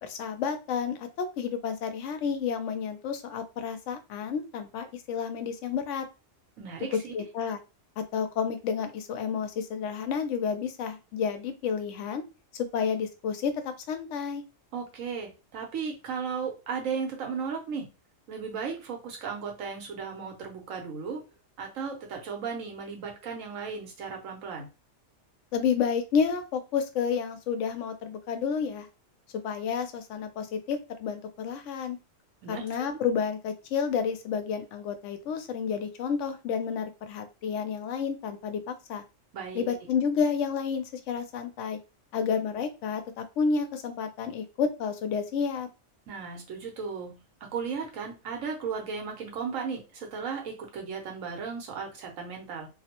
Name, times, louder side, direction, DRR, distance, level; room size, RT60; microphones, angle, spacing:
voice 1, 0.0-6.1 7.1-7.6 8.0-12.2 12.6-14.4 25.5-28.9 29.4-32.0 32.5-39.0 39.5-41.8 42.1-45.7, left 6 dB, 75° left, 8 dB, 0.9 m, -30 dB
voice 2, 6.6-7.1 14.7-17.9 18.3-21.2 21.6-24.7 32.4-33.0 39.3-39.7 46.1-52.7, right 5 dB, 80° right, 2 dB, 1.2 m, -35 dB
2.7 x 2.0 x 2.8 m, 0.29 s
omnidirectional pair, 1.3 m